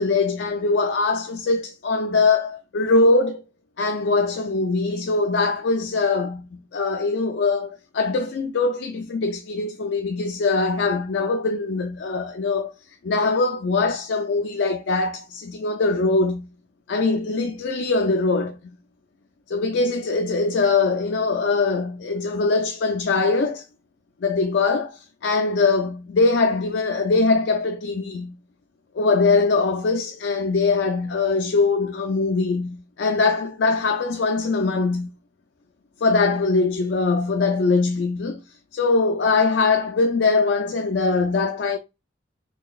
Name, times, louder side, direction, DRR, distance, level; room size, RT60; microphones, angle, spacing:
voice 1, 0.0-3.4 3.8-12.7 13.0-16.5 16.9-18.6 19.5-23.6 24.2-28.3 29.0-35.1 36.0-38.4 38.7-41.8, left 3 dB, 65° left, 0.4 m, -22 dB
3.8 x 3.4 x 2.3 m
head